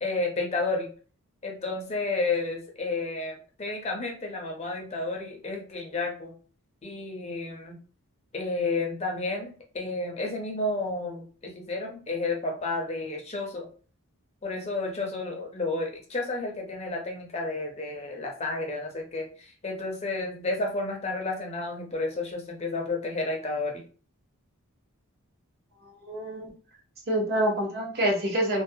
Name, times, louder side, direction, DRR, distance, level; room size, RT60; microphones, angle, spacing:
voice 1, 0.0-0.9 1.4-6.3 6.8-7.8 8.3-13.7 14.4-23.8, left 3 dB, 30° left, 1 dB, 0.5 m, -31 dB
voice 2, 26.1-26.5 27.1-28.6, right 1 dB, 45° right, 0 dB, 0.6 m, -26 dB
2.3 x 2.0 x 2.6 m, 0.39 s
head